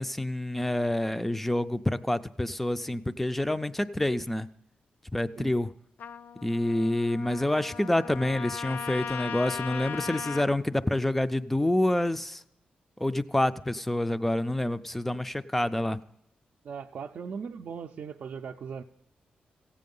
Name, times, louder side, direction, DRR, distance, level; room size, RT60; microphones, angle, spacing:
voice 1, 0.0-4.5 5.1-5.7 6.4-12.4 13.0-16.0, left 1 dB, 5° left, 12 dB, 0.4 m, -27 dB
Trumpet, 6.0-10.5, left 7 dB, 80° left, 0.4 m, -38 dB
voice 2, 16.6-18.8, right 6 dB, 60° right, 2 dB, 0.5 m, -38 dB
15.5 x 8.5 x 5.3 m, 0.85 s
wide cardioid pair, 145°, 3 cm